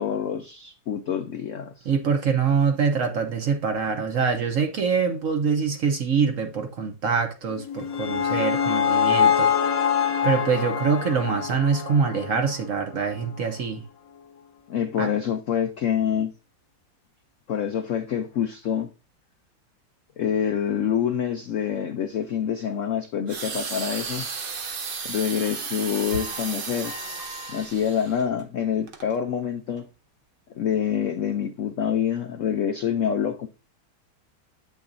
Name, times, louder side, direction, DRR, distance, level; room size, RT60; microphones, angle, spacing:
voice 1, 0.0-1.9 14.7-16.3 17.5-18.9 20.2-24.3 25.0-26.9 27.5-29.9 30.6-33.5, left 8 dB, 90° left, 0.6 m, -26 dB
voice 2, 1.9-9.5 10.2-13.8 15.0-15.1, right 6 dB, 60° right, 0.9 m, -24 dB
sound 1, 7.6-12.7, left 8 dB, 60° left, 1.0 m, -24 dB
sound 2, 23.3-28.2 28.9-29.1, right 5 dB, 80° right, 0.4 m, -34 dB
sound 3, 26.1-27.7 28.0-28.7 29.0-29.3 29.8-29.9, left 2 dB, 15° right, 1.0 m, -42 dB
8.4 x 5.9 x 2.6 m
omnidirectional pair, 2.1 m